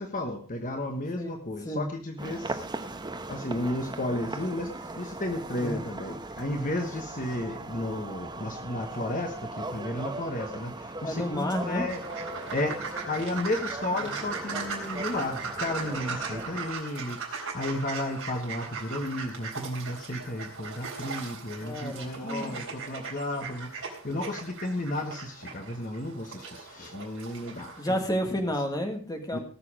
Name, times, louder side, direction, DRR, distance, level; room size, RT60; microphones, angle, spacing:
voice 1, 0.0-2.7 3.3-12.0 12.5-12.8 13.0-28.0 29.3-29.4, left 1 dB, 40° left, 4 dB, 1.3 m, -33 dB
sound 1, 2.2-16.7, right 2 dB, 20° right, 1.0 m, -39 dB
voice 2, 11.0-11.8 14.0-14.1 21.6-22.6 27.8-29.4, equal, 15° left, 4 dB, 1.8 m, -31 dB
sound 2, 11.9-27.9, right 5 dB, 65° right, 4.0 m, -38 dB
18.5 x 6.8 x 4.9 m, 0.41 s
head